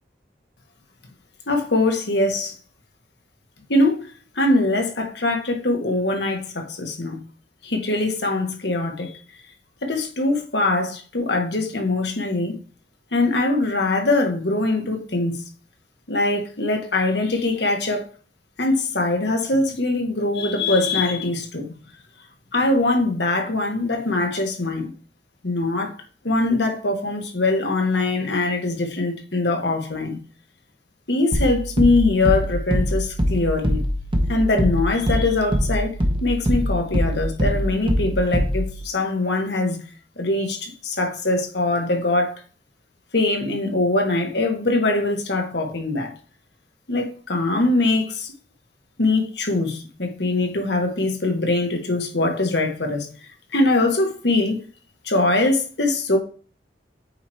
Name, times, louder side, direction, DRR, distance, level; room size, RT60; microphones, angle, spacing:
voice 1, 1.5-2.5 3.7-4.1 4.3-7.2 7.6-9.2 9.8-12.6 13.1-15.4 16.1-18.1 18.6-21.7 22.5-24.9 25.4-25.9 26.2-30.2 31.1-33.8 34.3-39.8 40.2-42.4 43.1-46.1 46.9-48.3 49.0-53.1 53.5-54.6 55.0-56.2, left 2 dB, 70° left, 1.5 m, -22 dB
sound 1, 31.3-38.8, equal, 30° right, 1.0 m, -23 dB
8.4 x 3.1 x 4.5 m
head